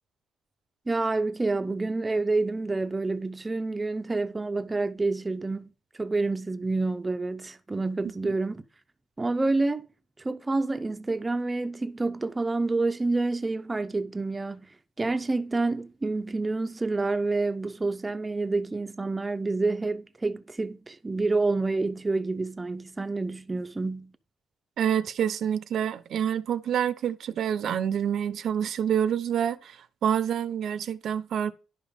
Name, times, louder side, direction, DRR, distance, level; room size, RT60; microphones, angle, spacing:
voice 1, 0.9-5.7 6.0-8.6 9.2-9.9 10.2-14.7 15.0-24.2, right 3 dB, 20° right, 0.7 m, -28 dB
voice 2, 24.8-31.5, right 9 dB, 70° right, 0.8 m, -27 dB
11.0 x 5.4 x 5.2 m
cardioid pair, 100°, 0 cm